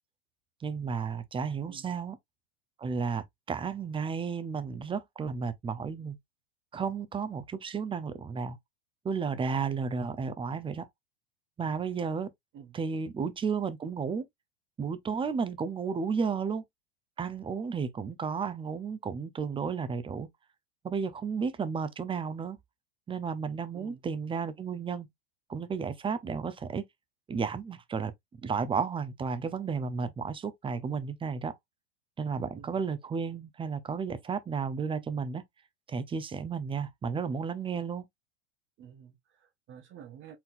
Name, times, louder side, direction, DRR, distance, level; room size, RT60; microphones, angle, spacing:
voice 1, 0.6-2.2 2.8-6.2 6.7-8.6 9.0-10.9 11.6-12.3 12.7-14.2 14.8-16.6 17.2-20.3 20.8-22.6 23.1-25.1 25.5-26.8 27.3-28.1 28.4-31.6 32.2-35.4 35.9-38.0, right 5 dB, 15° right, 0.7 m, -33 dB
voice 2, 32.5-32.8 38.8-40.4, right 8 dB, 35° right, 1.0 m, -50 dB
4.3 x 3.9 x 2.5 m
hypercardioid pair, 105°, 34 cm